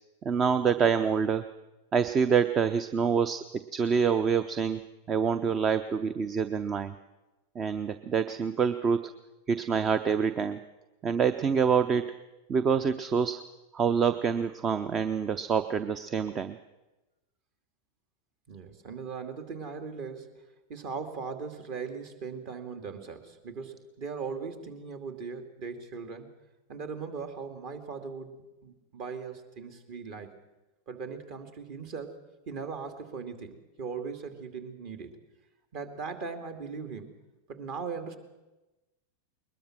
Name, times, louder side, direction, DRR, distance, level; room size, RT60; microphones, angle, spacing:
voice 1, 0.2-1.4 1.9-6.9 7.5-9.1 9.5-10.6 11.0-12.1 12.5-13.4 13.7-16.6, right 6 dB, 25° right, 12 dB, 0.7 m, -26 dB
voice 2, 18.5-20.4 20.7-26.3 26.7-28.3 28.6-30.4 30.9-35.2 35.7-37.2 37.5-38.2, right 5 dB, 45° right, 7 dB, 2.6 m, -39 dB
21.5 x 20.5 x 6.1 m, 1.1 s
figure-of-eight pair, 90°, 0 cm